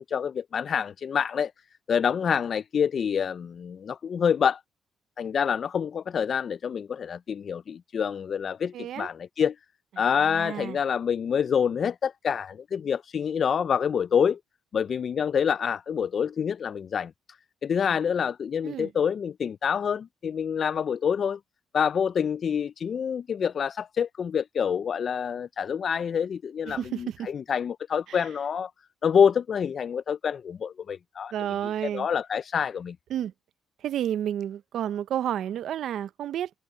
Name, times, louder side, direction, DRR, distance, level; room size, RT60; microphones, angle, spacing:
voice 1, 0.0-1.5 1.9-4.6 5.2-9.6 10.0-14.4 14.7-17.1 17.6-21.4 21.7-28.7 29.0-31.3 31.9-33.0, left 7 dB, 50° left, 0.3 m, -27 dB
voice 2, 8.7-9.1 10.2-10.8 18.6-18.9 26.6-27.3 28.1-28.2 31.3-32.1 33.1-33.3 33.8-36.5, right 10 dB, 70° right, 0.6 m, -31 dB
cardioid pair, 90°, 0 cm